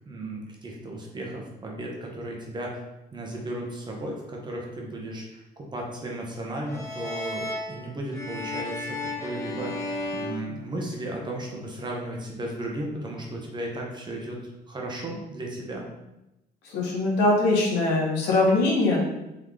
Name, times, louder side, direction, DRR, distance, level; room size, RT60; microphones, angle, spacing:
voice 1, 0.1-2.8 3.1-9.8 10.1-15.9, right 1 dB, 25° right, -1 dB, 1.0 m, -35 dB
sound 1, 6.7-11.3, left 2 dB, 15° left, 0.8 m, -34 dB
voice 2, 16.7-19.0, left 2 dB, 90° left, -2 dB, 1.2 m, -22 dB
3.7 x 3.0 x 3.5 m, 0.93 s
cardioid pair, 110°, 17 cm